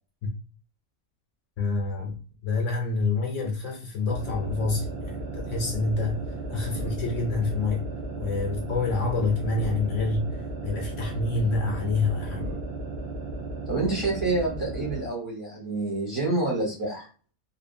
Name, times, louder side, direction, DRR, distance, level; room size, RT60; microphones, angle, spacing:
voice 1, 1.6-6.2 6.5-7.9 8.2-12.5, left 3 dB, 70° left, 0 dB, 1.0 m, -27 dB
sound 1, 4.0-15.1, right 2 dB, 60° right, 0.7 m, -35 dB
voice 2, 13.7-17.1, right 2 dB, 20° right, -5 dB, 0.7 m, -28 dB
2.7 x 2.1 x 2.5 m, 0.36 s
omnidirectional pair, 1.4 m